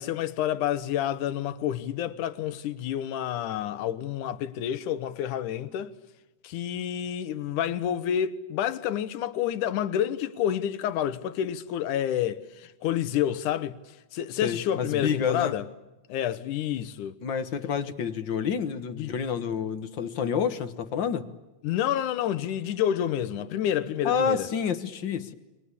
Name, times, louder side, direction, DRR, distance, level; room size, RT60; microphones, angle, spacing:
voice 1, 0.0-5.9 6.4-13.8 14.1-15.7 16.1-17.2 19.0-19.1 21.6-24.5, left 10 dB, 85° left, 2.6 m, -29 dB
voice 2, 14.4-15.5 17.2-21.3 24.0-25.3, left 7 dB, 50° left, 1.6 m, -28 dB
30.0 x 23.0 x 8.4 m
omnidirectional pair, 3.5 m